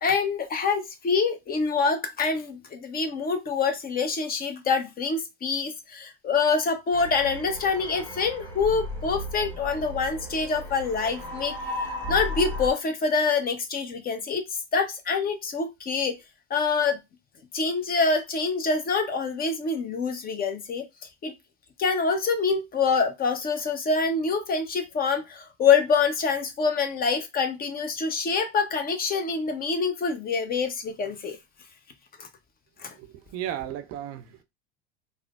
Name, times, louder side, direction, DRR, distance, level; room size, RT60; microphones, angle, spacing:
voice 1, 0.0-11.5 11.8-14.4 14.7-16.1 16.5-17.0 17.5-20.8 21.2-21.3 21.8-31.4 32.2-32.3 32.8-32.9, left 5 dB, 30° left, 0.6 m, -26 dB
sound 1, 6.9-12.7, left 1 dB, 5° left, 1.3 m, -35 dB
voice 2, 33.0-34.4, right 11 dB, 50° right, 0.5 m, -35 dB
3.1 x 2.0 x 2.3 m
hypercardioid pair, 80°, 32 cm